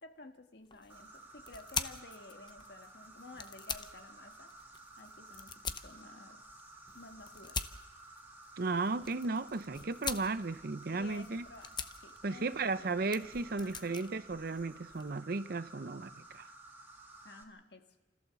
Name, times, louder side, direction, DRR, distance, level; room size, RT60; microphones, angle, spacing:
voice 1, 0.0-4.5 5.0-6.4 6.9-7.6 10.9-11.7 12.0-12.8 13.6-14.0 17.2-17.9, left 2 dB, 70° left, 1.6 m, -53 dB
sound 1, 0.6-15.2, left 6 dB, 25° left, 0.7 m, -45 dB
Insect, 0.9-17.4, right 2 dB, 10° right, 1.6 m, -54 dB
voice 2, 8.6-11.4 12.2-16.5, right 3 dB, 60° right, 0.7 m, -35 dB
28.0 x 14.5 x 7.0 m
head